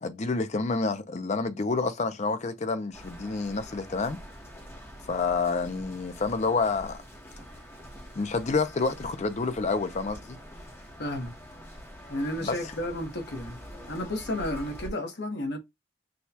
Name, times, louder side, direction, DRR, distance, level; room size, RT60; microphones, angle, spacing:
voice 1, 0.0-4.2 5.1-7.0 8.2-10.4 12.4-12.6, left 4 dB, 35° left, 0.5 m, -28 dB
sound 1, 2.9-14.9, equal, 15° left, 1.0 m, -45 dB
voice 2, 11.0-11.3 12.1-13.6 13.9-15.6, left 1 dB, 60° left, 1.1 m, -32 dB
6.3 x 2.3 x 2.7 m
head